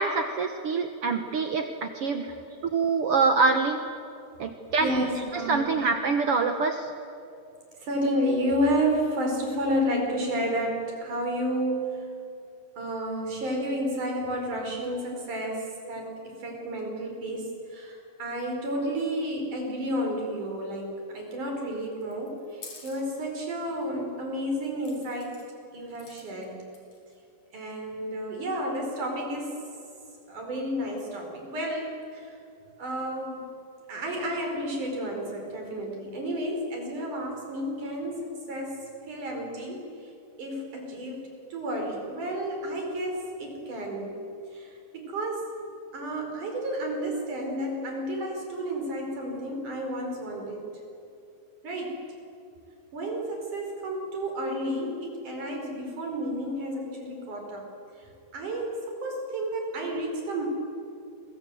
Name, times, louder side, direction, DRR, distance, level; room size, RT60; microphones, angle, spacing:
voice 1, 0.0-2.3 2.6-3.8 4.4-5.0 5.5-6.9, right 4 dB, 75° right, 6 dB, 1.3 m, -25 dB
voice 2, 4.8-5.7 7.8-12.1 12.8-25.4 25.7-26.6 27.5-29.6 30.3-32.4 32.8-33.6 33.9-40.1 40.4-44.2 44.5-45.5 45.9-50.7 51.6-52.1 52.9-57.7 58.0-60.5, equal, 55° right, 2 dB, 6.1 m, -31 dB
sound 1, 22.0-23.0 24.8-25.5 25.9-26.4 26.7-27.1, left 4 dB, 45° left, 5.4 m, -47 dB
29.5 x 23.5 x 7.8 m, 2.6 s
omnidirectional pair, 4.5 m